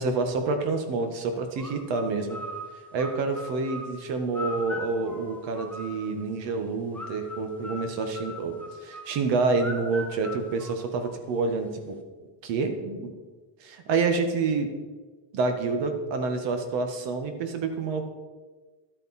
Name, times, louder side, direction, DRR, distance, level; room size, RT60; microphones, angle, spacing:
voice 1, 0.0-2.4 2.9-8.6 8.8-12.0 12.4-13.1 13.6-14.7 15.3-18.1, right 4 dB, 70° right, 7 dB, 1.6 m, -28 dB
sound 1, 1.6-6.3 6.9-11.4, left 1 dB, 5° left, 0.4 m, -40 dB
12.0 x 8.9 x 4.3 m, 1.3 s
cardioid pair, 175°, 46 cm